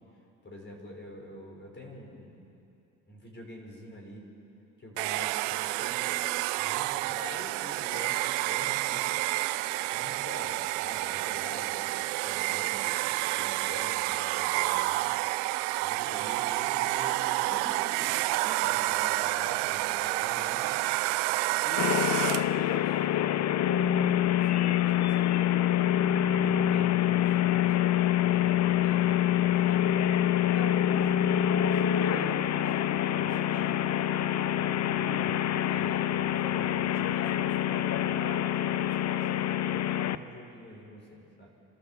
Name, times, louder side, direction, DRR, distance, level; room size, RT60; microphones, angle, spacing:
voice 1, 0.4-2.5 3.1-4.3 4.8-6.2 6.6-9.2 9.9-15.1 15.8-20.8 21.6-29.9 30.4-33.8 34.1-41.5, left 1 dB, 30° left, 0 dB, 5.2 m, -45 dB
Domestic sounds home sounds, 5.0-22.6, right 19 dB, 90° right, 0.5 m, -29 dB
sound 1, 21.8-40.2, left 11 dB, 50° left, 0.7 m, -26 dB
28.0 x 12.5 x 7.5 m, 2.7 s
supercardioid pair, 85°, 36 cm